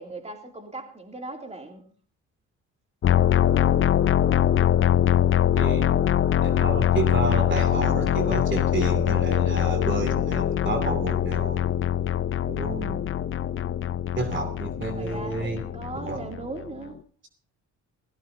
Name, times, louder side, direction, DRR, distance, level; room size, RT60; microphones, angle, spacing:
voice 1, 0.0-1.8 14.9-17.0, right 2 dB, 20° right, 3 dB, 2.8 m, -38 dB
sound 1, 3.0-16.7, left 11 dB, 45° left, 0.6 m, -23 dB
voice 2, 5.6-5.9 6.4-11.6 12.5-13.0 14.2-15.6 16.0-16.2, right 3 dB, 40° right, 6 dB, 2.6 m, -30 dB
17.0 x 16.0 x 2.8 m, 0.42 s
cardioid pair, 90°, 30 cm